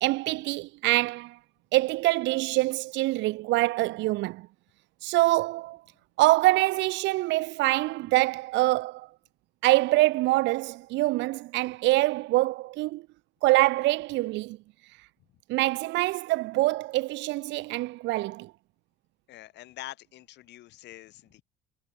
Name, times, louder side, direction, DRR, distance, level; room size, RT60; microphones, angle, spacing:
voice 1, 0.0-1.4 1.7-4.5 5.0-5.8 6.2-9.1 9.6-13.0 13.4-14.6 15.5-18.5, right 19 dB, 60° right, 0.8 m, -25 dB
voice 2, 19.3-21.4, left 15 dB, 55° left, 6.7 m, -45 dB
cardioid pair, 165°, 21 cm